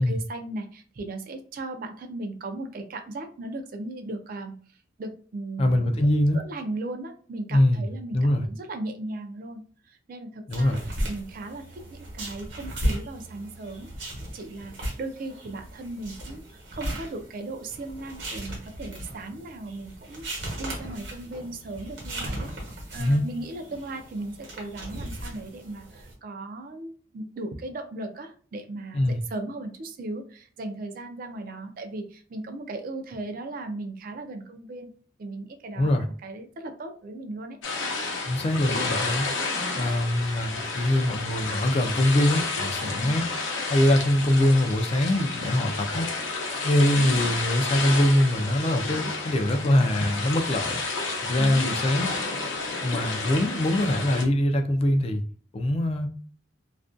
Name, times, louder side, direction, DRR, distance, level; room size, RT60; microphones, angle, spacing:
voice 1, 0.0-4.5 5.0-5.9 6.3-9.6 9.9-10.7 11.1-13.9 14.3-16.4 16.7-22.5 22.9-34.9 35.2-35.9 36.2-37.6 42.9-43.1 47.0-47.3 51.4-51.7, right 2 dB, 50° right, 6 dB, 0.4 m, -37 dB
voice 2, 5.6-6.4 7.5-8.5 10.5-10.8 23.0-23.2 28.9-29.2 35.7-36.1 38.3-39.3 39.8-43.2 43.7-46.1 46.6-50.8 51.2-52.1 52.8-55.2 55.5-56.1, left 1 dB, 30° left, 6 dB, 0.3 m, -23 dB
sound 1, 10.5-26.1, right 1 dB, 65° right, 1.0 m, -36 dB
sound 2, 37.6-54.2, left 3 dB, 85° left, 0.6 m, -31 dB
2.4 x 2.1 x 2.4 m, 0.44 s
head